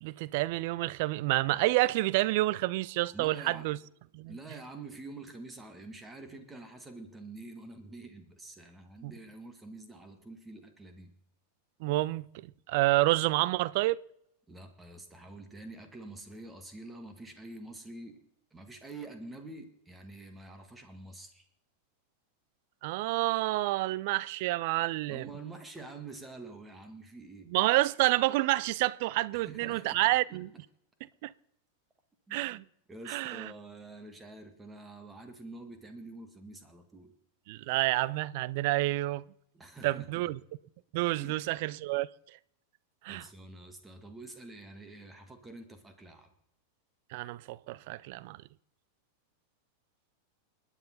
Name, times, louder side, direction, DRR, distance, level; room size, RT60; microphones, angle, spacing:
voice 1, 0.0-3.8 4.1-4.3 9.0-9.1 11.8-14.0 22.8-25.2 27.5-30.5 31.2-31.3 32.3-32.6 33.1-33.5 37.5-39.2 39.8-40.4 40.9-42.1 43.0-43.3 47.1-48.4, right 18 dB, 50° right, 0.5 m, -29 dB
voice 2, 3.1-3.7 4.3-11.1 14.5-18.2 18.5-21.5 25.1-27.5 29.3-30.4 32.3-32.6 32.9-37.1 39.5-40.3 41.2-41.5 43.1-46.3, right 2 dB, 10° right, 2.0 m, -47 dB
29.5 x 9.9 x 4.2 m
figure-of-eight pair, 90°, 0 cm